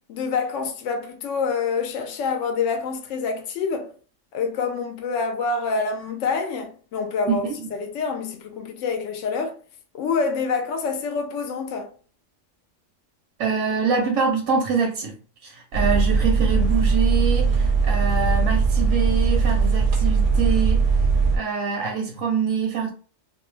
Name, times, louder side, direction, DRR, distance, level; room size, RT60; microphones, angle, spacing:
voice 1, 0.1-3.9 4.3-7.4 7.8-9.6 9.9-11.9, left 5 dB, 75° left, 0.9 m, -26 dB
voice 2, 7.3-7.7 13.4-20.9 21.3-22.9, right 5 dB, 90° right, 1.0 m, -25 dB
sound 1, 15.7-21.4, right 5 dB, 60° right, 0.6 m, -20 dB
2.6 x 2.0 x 3.1 m
omnidirectional pair, 1.3 m